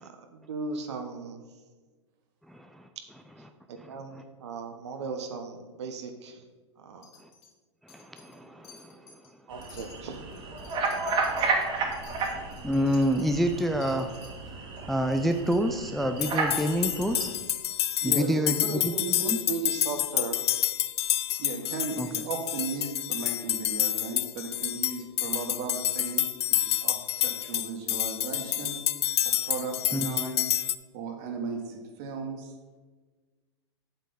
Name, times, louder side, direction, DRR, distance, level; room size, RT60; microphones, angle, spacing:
voice 1, 0.0-1.4 3.7-6.4 6.8-7.1 9.5-10.2 18.6-20.4, right 4 dB, 65° right, 6 dB, 1.1 m, -36 dB
voice 2, 2.5-2.9 3.8-4.2 7.2-7.3 7.8-9.2 12.4-14.1 14.9-17.3 18.0-19.4 22.0-22.1 29.9-30.1, equal, ahead, 6 dB, 0.4 m, -28 dB
Wind chime, 7.0-7.5 7.9-8.4 8.6-9.3 9.6-14.3 14.7-14.8 15.1-15.6 16.2-16.6 17.2-17.7 18.4-18.6 19.2-19.3 19.6-19.7, left 6 dB, 40° left, 2.8 m, -53 dB
sound 1, 9.5-17.3, right 3 dB, 30° right, 1.8 m, -32 dB
sound 2, 16.2-30.7, left 12 dB, 65° left, 0.5 m, -29 dB
voice 3, 18.0-18.5 21.4-28.8 29.2-30.4 30.9-32.5, right 4 dB, 50° right, 4 dB, 1.8 m, -36 dB
8.1 x 8.0 x 4.1 m, 1.3 s
hypercardioid pair, 105°, 15 cm